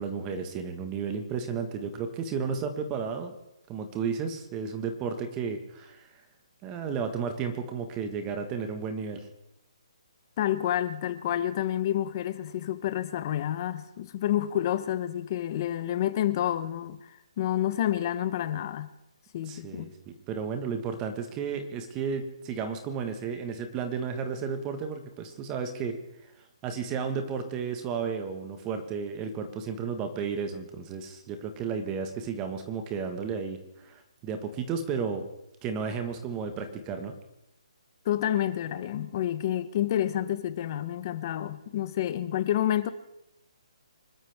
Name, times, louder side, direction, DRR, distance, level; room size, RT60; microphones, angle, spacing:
voice 1, 0.0-3.4 3.7-6.1 6.6-9.3 19.5-26.0 26.6-35.2 35.6-37.1, right 6 dB, 20° right, 1.5 m, -33 dB
voice 2, 10.4-17.0 17.4-18.9 19.3-19.9 38.0-42.9, left 11 dB, 35° left, 1.0 m, -29 dB
25.5 x 12.5 x 3.6 m
hypercardioid pair, 155°, 3 cm